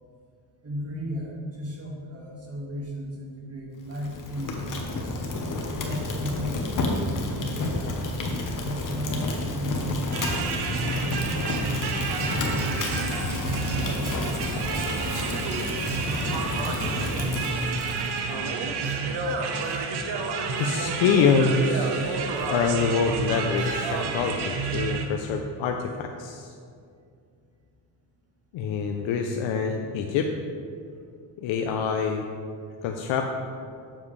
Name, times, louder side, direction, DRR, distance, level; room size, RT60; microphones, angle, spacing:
voice 1, 0.6-4.9 5.7-6.7 7.0-8.1 8.6-10.3 11.0-13.4, equal, 30° right, -3 dB, 1.8 m, -36 dB
Fire, 3.9-18.3, left 2 dB, 40° left, 1.1 m, -30 dB
sound 1, 10.1-25.1, right 4 dB, 55° right, 0.9 m, -29 dB
sound 2, 12.5-13.9 14.9-15.0 16.0-17.3 17.8-18.4 18.8-19.3 19.6-20.8 21.1-21.2 22.3-22.6 22.9-23.1 23.6-24.2, right 1 dB, 80° right, 1.7 m, -43 dB
voice 2, 20.6-26.5 28.5-30.3 31.4-32.2 32.8-33.3, left 5 dB, 75° left, 3 dB, 0.6 m, -25 dB
7.2 x 7.0 x 3.3 m, 2.3 s
cardioid pair, 100°, 47 cm